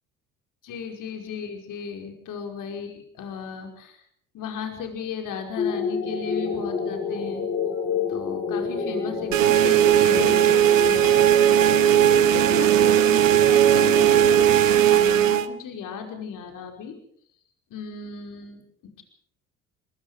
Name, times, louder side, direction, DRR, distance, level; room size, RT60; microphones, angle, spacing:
voice 1, 0.6-4.0 4.3-7.5 8.1-11.6 12.3-17.0 17.7-19.0, left 6 dB, 55° left, 4 dB, 5.3 m, -35 dB
sound 1, 5.6-14.5, left 4 dB, 35° left, 7.6 m, -29 dB
sound 2, 9.3-15.5, right 11 dB, 85° right, 0.9 m, -18 dB
27.0 x 22.0 x 5.0 m, 0.64 s
hypercardioid pair, 55°, 38 cm